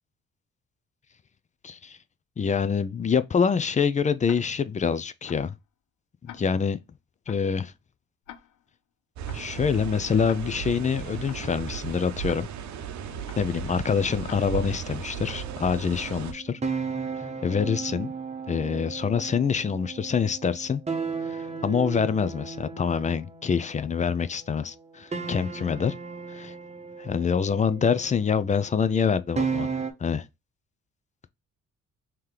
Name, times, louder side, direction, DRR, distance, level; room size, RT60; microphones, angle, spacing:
voice 1, 1.6-2.0 2.4-5.5 6.2-6.8 7.3-7.7 9.3-12.5 13.4-16.6 17.4-18.1 18.5-20.8 21.2-25.9 26.3-26.5 27.0-29.7 30.0-30.3, left 6 dB, 25° left, 0.4 m, -26 dB
Tick-tock, 4.2-4.7 5.3-5.6 6.3-6.7 7.3-7.6 8.3-8.7 9.3-9.6 10.3-10.7 11.3-11.6 12.3-12.7 13.3-13.6 14.2-14.7 15.2-15.6, left 11 dB, 85° left, 0.5 m, -48 dB
sound 1, 9.2-16.3, right 8 dB, 70° right, 0.7 m, -36 dB
sound 2, 15.2-24.5 25.1-29.9, right 5 dB, 20° right, 0.8 m, -35 dB
3.2 x 2.9 x 3.7 m
cardioid pair, 90°, 30 cm